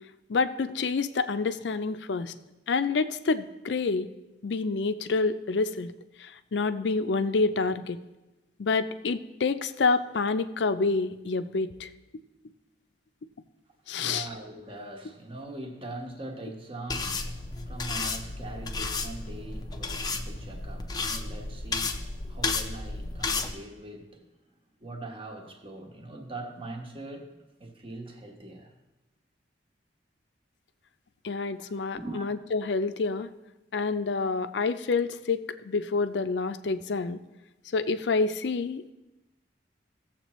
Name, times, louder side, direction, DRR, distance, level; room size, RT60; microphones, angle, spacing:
voice 1, 0.3-2.3 2.7-4.1 4.4-5.9 6.2-8.0 8.6-11.9 13.9-14.3 31.2-33.3 33.7-37.2 37.7-38.9, left 4 dB, 70° left, 0.5 m, -28 dB
voice 2, 13.8-24.3 24.8-28.7 31.6-32.3, right 2 dB, 30° right, 1.1 m, -42 dB
sound 1, 16.9-23.5, left 3 dB, 20° left, 0.6 m, -32 dB
17.0 x 7.4 x 3.1 m
head